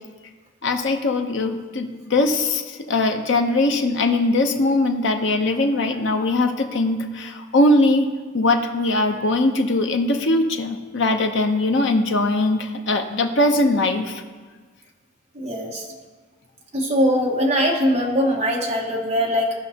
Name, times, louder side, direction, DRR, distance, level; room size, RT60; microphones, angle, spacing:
voice 1, 0.6-8.1 8.3-14.2, left 2 dB, 60° left, 4 dB, 0.7 m, -21 dB
voice 2, 15.3-15.8 16.7-19.5, equal, 30° right, -2 dB, 1.3 m, -21 dB
15.5 x 5.4 x 2.8 m, 1.4 s
head